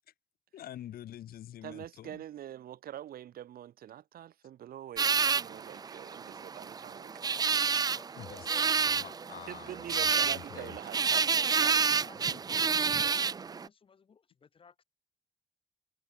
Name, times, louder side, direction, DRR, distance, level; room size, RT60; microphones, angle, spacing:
voice 1, 0.5-2.2 8.2-10.8 12.2-12.4, left 12 dB, 85° left, 2.3 m, -47 dB
voice 2, 1.6-7.1 9.5-11.8, right 11 dB, 80° right, 3.4 m, -45 dB
sound 1, 5.0-13.7, right 5 dB, 25° right, 0.5 m, -29 dB
voice 3, 7.9-9.3 12.0-12.2 12.5-14.8, left 6 dB, 35° left, 4.7 m, -59 dB
wide cardioid pair, 165°, 15 cm